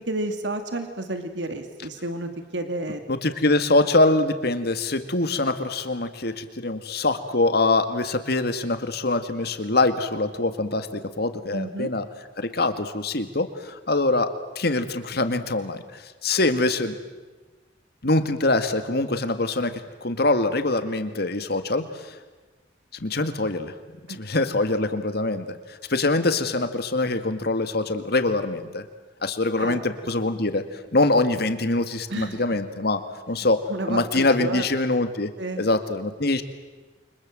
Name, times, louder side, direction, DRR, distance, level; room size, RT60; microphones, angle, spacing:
voice 1, 0.0-3.0 11.5-11.9 24.1-24.2 29.6-29.8 32.1-32.4 33.7-34.6 35.4-35.7, right 2 dB, 85° right, 7 dB, 2.5 m, -31 dB
voice 2, 3.1-12.1 12.4-17.0 18.0-22.2 22.9-23.7 24.1-28.8 29.2-33.6 33.9-35.3 35.6-36.4, left 2 dB, 60° left, 9 dB, 2.1 m, -24 dB
29.5 x 25.0 x 7.8 m, 1.3 s
head